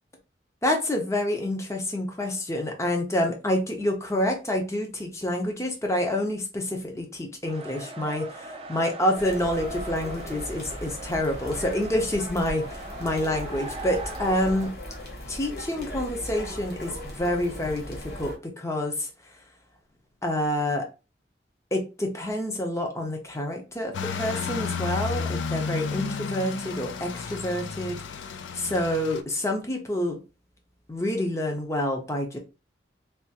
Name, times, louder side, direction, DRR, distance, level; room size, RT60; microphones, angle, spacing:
voice 1, 0.6-14.7 15.3-19.1 20.2-20.9 21.7-30.2 30.9-32.4, left 1 dB, 15° left, 0.6 m, -28 dB
sound 1, 7.4-14.7, right 1 dB, 30° right, 0.4 m, -40 dB
sound 2, 9.1-18.3, equal, 55° left, 0.9 m, -38 dB
sound 3, 23.9-29.2, left 5 dB, 90° left, 0.4 m, -32 dB
3.4 x 2.4 x 2.8 m
head